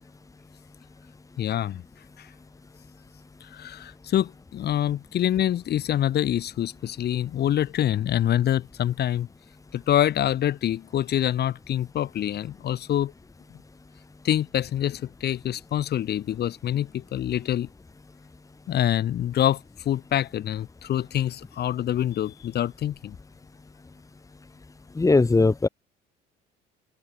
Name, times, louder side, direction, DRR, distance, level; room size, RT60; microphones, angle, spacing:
voice 1, 1.4-1.8 2.2-2.3 3.4-9.3 9.7-13.1 14.2-17.7 18.7-23.2, left 11 dB, 55° left, 7.4 m, -26 dB
voice 2, 25.0-25.7, left 3 dB, 15° left, 3.6 m, -19 dB
open air
cardioid pair, 110°, 20 cm